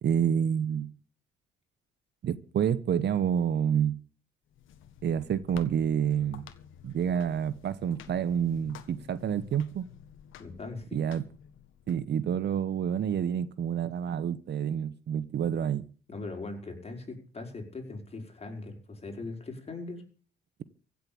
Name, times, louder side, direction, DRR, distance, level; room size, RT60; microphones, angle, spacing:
voice 1, 0.0-0.9 2.2-4.0 5.0-6.5 6.8-9.9 10.9-11.2 11.9-15.9, right 8 dB, 60° right, 16 dB, 1.0 m, -28 dB
sound 1, 4.5-11.9, left 9 dB, 85° left, 1.7 m, -50 dB
voice 2, 10.4-11.0 16.1-20.0, left 3 dB, 30° left, 3 dB, 5.2 m, -40 dB
16.0 x 7.6 x 8.7 m, 0.41 s
cardioid pair, 90°, 20 cm